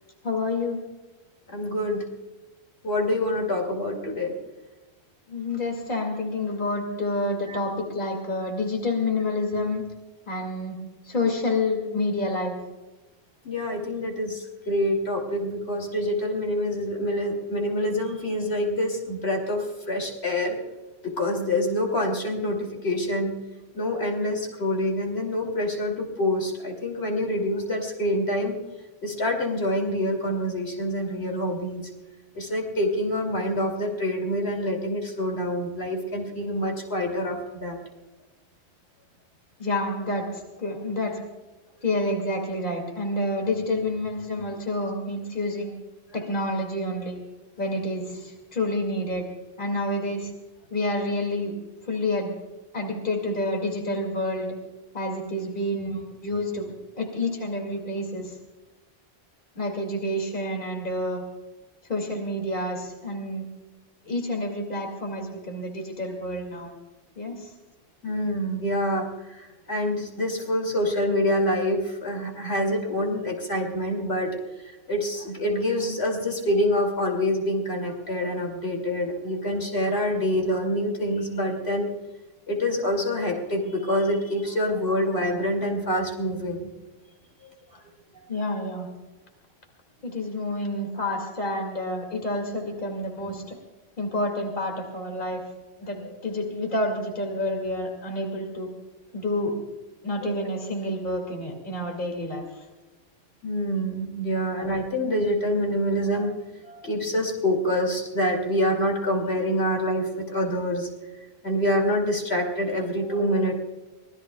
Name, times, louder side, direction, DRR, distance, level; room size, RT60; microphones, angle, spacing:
voice 1, 0.2-0.8 5.3-9.8 10.3-10.8 11.0-12.6 39.6-41.2 41.8-45.7 46.1-47.2 47.6-49.2 49.6-50.3 50.7-51.5 51.9-52.3 52.7-54.5 54.9-58.4 59.6-61.2 61.9-63.4 64.0-66.7 67.2-67.5 88.3-88.9 90.0-93.6 94.0-95.4 95.8-98.7 99.1-99.5 100.0-102.6, left 1 dB, 50° left, 2 dB, 2.6 m, -28 dB
voice 2, 1.5-2.0 2.8-4.3 7.5-7.6 13.4-20.6 21.0-23.3 23.7-28.5 29.0-31.9 32.3-37.8 68.0-74.4 74.9-81.9 82.5-86.7 100.2-100.3 103.4-106.3 106.6-110.9 111.4-113.5, left 1 dB, 70° left, 0 dB, 3.0 m, -26 dB
25.0 x 19.5 x 2.3 m, 1.1 s
omnidirectional pair, 1.1 m